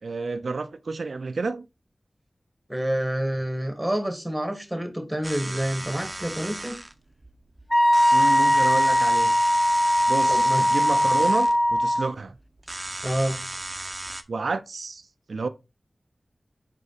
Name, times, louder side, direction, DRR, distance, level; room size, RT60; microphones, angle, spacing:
voice 1, 0.0-1.7 8.1-9.4 10.1-12.4 14.3-15.5, right 4 dB, 90° right, 0.4 m, -30 dB
voice 2, 2.7-6.8 10.3-10.6 13.0-13.4, right 1 dB, 5° right, 1.9 m, -28 dB
sound 1, 5.2-14.2, right 1 dB, 25° right, 0.7 m, -36 dB
Wind instrument woodwind instrument, 7.7-12.1, equal, 20° left, 0.5 m, -20 dB
5.2 x 4.9 x 4.0 m
wide cardioid pair, 60°, 0 cm